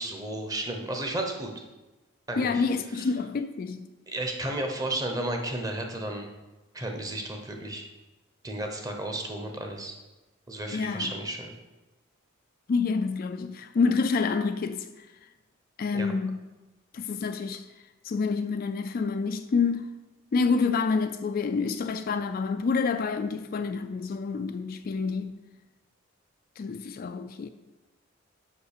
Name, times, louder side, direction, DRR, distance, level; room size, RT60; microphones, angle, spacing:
voice 1, 0.0-1.6 2.3-2.6 3.0-3.1 4.1-6.3 6.7-7.8 8.4-10.0 10.5-11.5 15.9-16.1, right 1 dB, 15° right, 0.8 m, -33 dB
voice 2, 2.4-3.9 10.7-11.1 12.7-15.1 15.8-16.5 16.9-17.6 18.0-19.9 20.3-25.3 26.6-27.5, left 4 dB, 45° left, 0.3 m, -28 dB
5.6 x 5.3 x 6.6 m
head